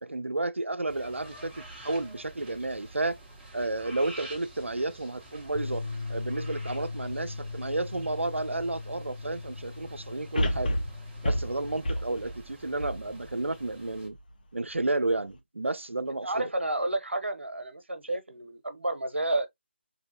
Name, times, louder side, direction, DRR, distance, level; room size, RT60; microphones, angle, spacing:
voice 1, 0.0-3.2 3.5-10.8 11.2-14.2 14.5-16.5, right 2 dB, 85° right, 0.4 m, -32 dB
sound 1, 0.9-14.1, right 1 dB, 10° right, 0.7 m, -48 dB
sound 2, 5.5-11.8, left 3 dB, 70° left, 0.4 m, -39 dB
sound 3, 10.4-13.7 14.2-14.3, equal, 45° left, 0.8 m, -30 dB
voice 2, 16.2-19.5, right 2 dB, 70° right, 0.9 m, -30 dB
3.6 x 2.7 x 2.7 m
figure-of-eight pair, 155°, 6 cm